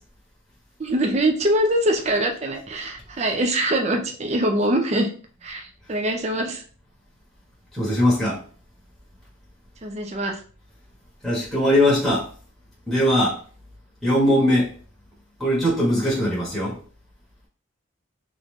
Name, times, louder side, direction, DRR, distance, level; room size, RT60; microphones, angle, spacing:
voice 1, 0.8-5.1 5.4-6.6 9.8-10.4, right 1 dB, 30° right, 3 dB, 0.4 m, -23 dB
voice 2, 7.7-8.4 11.2-12.3 12.9-13.4 14.0-14.7 15.4-16.8, left 1 dB, ahead, -6 dB, 1.0 m, -20 dB
3.0 x 2.5 x 3.4 m, 0.42 s
head